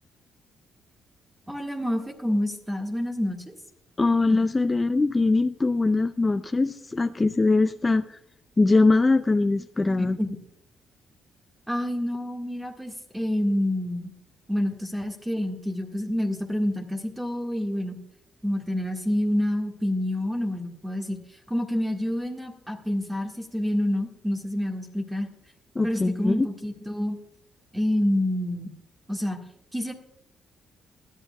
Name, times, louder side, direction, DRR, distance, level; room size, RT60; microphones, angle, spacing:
voice 1, 1.5-3.5 4.3-4.4 10.0-10.3 11.7-14.1 14.5-18.0 18.4-25.3 25.8-27.2 27.7-28.7 29.1-29.4 29.7-29.9, left 1 dB, 10° right, 2 dB, 1.7 m, -28 dB
voice 2, 4.0-8.2 8.6-10.2 25.8-26.5, left 3 dB, 20° left, 9 dB, 0.4 m, -22 dB
19.5 x 11.0 x 2.3 m, 0.76 s
cardioid pair, 90°, 0 cm